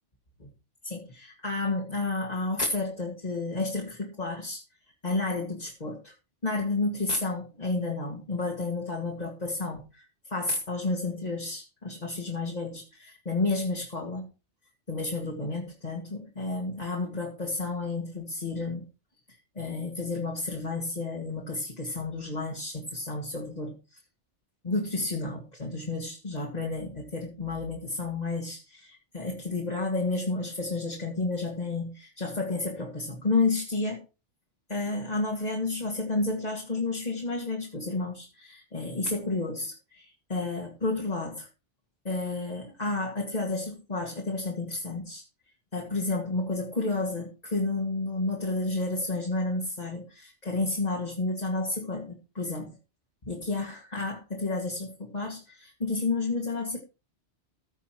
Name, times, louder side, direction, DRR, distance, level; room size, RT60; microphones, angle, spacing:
voice 1, 0.8-4.6 5.0-6.1 6.4-14.3 14.9-18.9 19.6-24.0 24.6-34.0 34.7-41.5 42.0-45.2 45.7-52.8 53.2-56.8, left 3 dB, 35° left, -1 dB, 2.3 m, -31 dB
15.0 x 5.6 x 4.5 m, 0.30 s
omnidirectional pair, 1.2 m